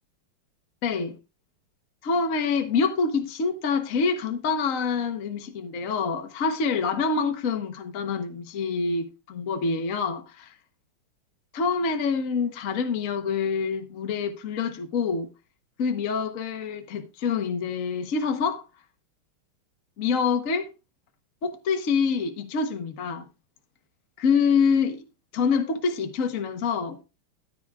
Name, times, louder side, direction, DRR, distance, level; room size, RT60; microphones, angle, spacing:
voice 1, 0.8-1.2 2.0-10.5 11.5-15.3 15.8-18.7 20.0-20.7 21.4-23.3 24.2-25.1 25.3-27.0, left 5 dB, 45° left, 1.1 m, -26 dB
13.5 x 10.5 x 2.4 m
omnidirectional pair, 2.4 m